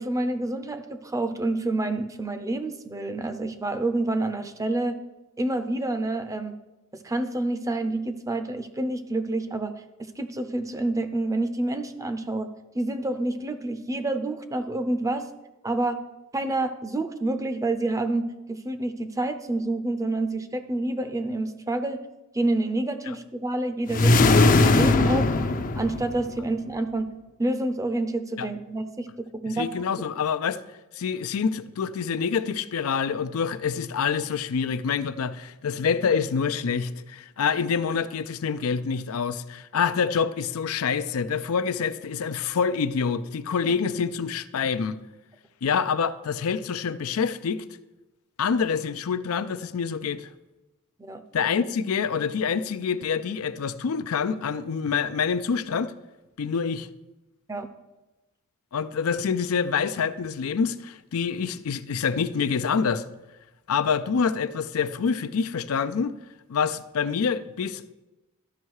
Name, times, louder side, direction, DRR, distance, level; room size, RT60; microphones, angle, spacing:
voice 1, 0.0-5.0 5.4-6.5 7.0-9.7 10.2-12.5 12.7-15.3 15.6-16.0 16.3-22.0 22.3-25.3 25.8-27.1 27.4-29.1 29.4-29.7 51.0-51.2 57.5-57.7, right 2 dB, 15° right, 0.5 m, -28 dB
sound 1, 23.9-26.5, left 2 dB, 40° left, 0.5 m, -19 dB
voice 2, 29.5-30.6 30.9-45.0 45.6-47.6 48.4-50.3 51.3-55.9 56.4-56.9 58.7-63.0 63.7-66.2 66.5-67.9, left 6 dB, 85° left, 0.4 m, -26 dB
12.5 x 5.4 x 4.7 m
head